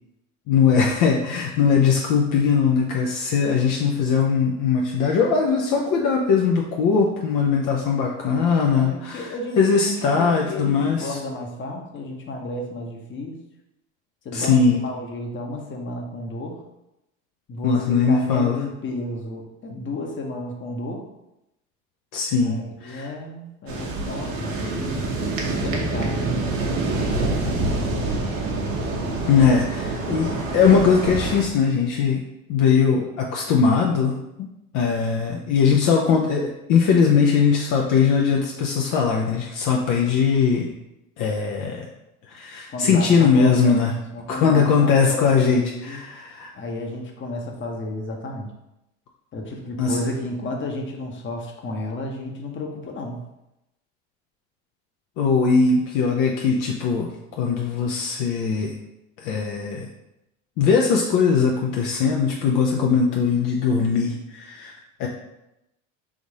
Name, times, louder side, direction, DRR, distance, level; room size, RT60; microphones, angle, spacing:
voice 1, 0.5-9.3 9.6-11.2 14.3-14.8 17.6-18.6 22.1-23.1 29.3-32.2 32.5-34.5 34.7-40.7 41.2-41.9 42.3-43.9 44.3-46.5 49.8-50.0 55.2-57.1 57.4-58.7 59.2-59.9 60.6-65.1, left 5 dB, 55° left, 0 dB, 0.7 m, -20 dB
voice 2, 8.7-13.4 14.2-16.6 17.5-21.1 22.4-25.0 25.5-28.0 42.7-46.0 46.5-48.5 49.3-53.2, left 1 dB, 30° left, 1 dB, 1.0 m, -32 dB
sound 1, 23.7-31.4, right 2 dB, 85° right, 1.0 m, -26 dB
3.6 x 2.7 x 4.7 m, 0.89 s
hypercardioid pair, 85°, 38 cm